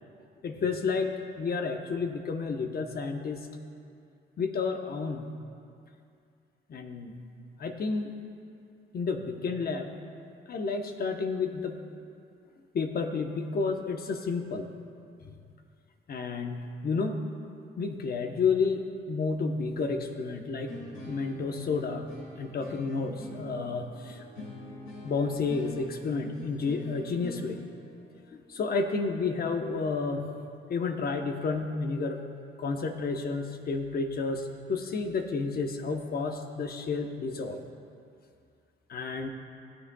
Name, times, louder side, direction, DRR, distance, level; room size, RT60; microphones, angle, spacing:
voice 1, 0.4-3.5 4.4-5.3 6.7-7.3 7.6-8.1 8.9-9.9 10.5-11.8 12.7-14.7 15.2-15.3 16.1-17.2 17.8-20.7 21.1-22.1 22.4-24.5 25.0-27.6 28.3-30.3 30.7-32.2 32.6-37.6 38.9-39.3, left 4 dB, 50° left, 5 dB, 0.9 m, -31 dB
sound 1, 20.7-29.6, left 1 dB, 85° left, 2.1 m, -45 dB
16.0 x 9.7 x 2.3 m, 2.4 s
cardioid pair, 90°, 20 cm